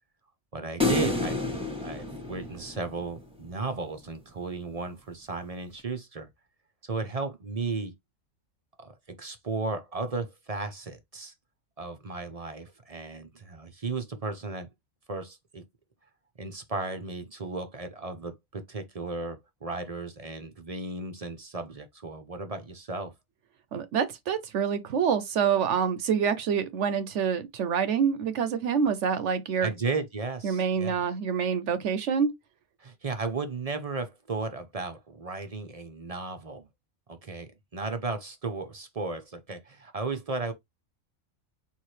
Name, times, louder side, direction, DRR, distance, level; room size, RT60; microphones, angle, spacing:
voice 1, 0.5-6.3 6.8-7.9 8.8-11.3 11.8-14.7 15.1-15.6 16.4-23.1 29.6-31.0 32.8-36.7 37.1-40.5, right 3 dB, 35° right, 0.7 m, -35 dB
sound 1, 0.8-3.2, left 3 dB, 5° right, 1.2 m, -29 dB
voice 2, 23.7-29.7 30.4-32.3, right 7 dB, 70° right, 0.9 m, -26 dB
4.7 x 3.5 x 3.2 m
omnidirectional pair, 1.3 m